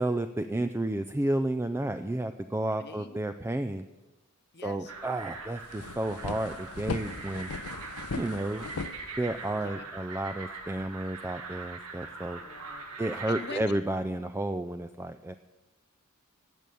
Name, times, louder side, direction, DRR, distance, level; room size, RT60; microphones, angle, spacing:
voice 1, 0.0-3.8 4.6-7.5 8.1-8.6 9.2-12.4 13.0-15.3, right 1 dB, 10° right, 9 dB, 0.3 m, -31 dB
voice 2, 2.7-3.2 4.5-4.9 9.6-9.8 12.4-12.9 13.1-13.7, left 5 dB, 50° left, 9 dB, 1.0 m, -43 dB
sound 1, 4.9-13.5, right 4 dB, 85° right, 1.9 m, -42 dB
sound 2, 5.0-5.1 5.4-9.7, left 4 dB, 80° left, 0.6 m, -38 dB
15.5 x 6.9 x 9.0 m, 1.2 s
head